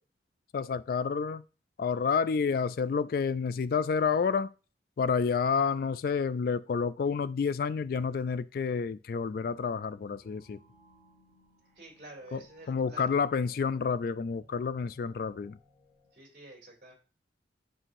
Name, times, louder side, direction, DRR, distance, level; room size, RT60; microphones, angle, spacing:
voice 1, 0.5-1.4 1.8-4.5 5.0-10.6 12.3-12.4 12.7-15.6, left 5 dB, 55° left, 0.3 m, -29 dB
sound 1, 9.4-16.1, left 1 dB, 30° left, 3.8 m, -63 dB
voice 2, 11.7-13.1 16.1-16.9, right 2 dB, 45° right, 2.6 m, -49 dB
9.8 x 5.6 x 2.6 m
head